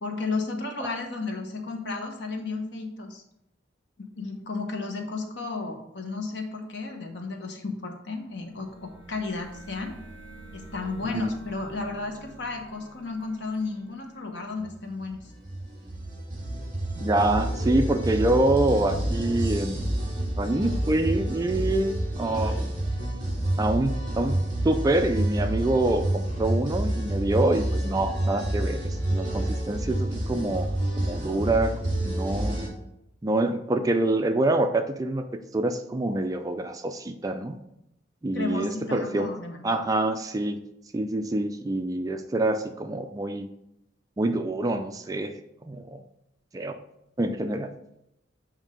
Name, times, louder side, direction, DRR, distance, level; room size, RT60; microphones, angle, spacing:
voice 1, 0.0-3.2 4.0-9.9 10.5-15.2 38.3-39.7, left 3 dB, 65° left, 3 dB, 1.0 m, -33 dB
sound 1, 8.3-15.0, right 2 dB, 10° left, 1.8 m, -48 dB
sound 2, 15.0-32.7, right 1 dB, 45° right, 2.1 m, -28 dB
voice 2, 16.9-20.0 20.4-22.6 23.6-24.4 24.6-30.7 31.0-32.6 33.2-35.3 35.5-37.6 38.2-39.3 39.6-40.6 40.9-43.5 44.2-45.4 45.6-46.0 46.5-46.8 47.2-47.7, right 2 dB, 20° right, 7 dB, 0.3 m, -26 dB
7.4 x 2.7 x 5.0 m, 0.82 s
head